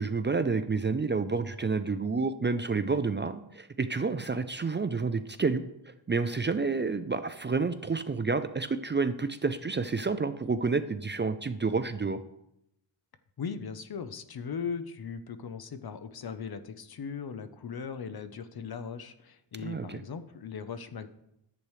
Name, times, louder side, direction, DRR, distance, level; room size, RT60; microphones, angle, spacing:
voice 1, 0.0-12.2 19.6-20.0, right 4 dB, 25° right, 11 dB, 0.5 m, -29 dB
voice 2, 13.4-21.1, left 6 dB, 50° left, 11 dB, 0.9 m, -38 dB
10.5 x 8.3 x 3.2 m, 0.81 s
cardioid pair, 60°, 48 cm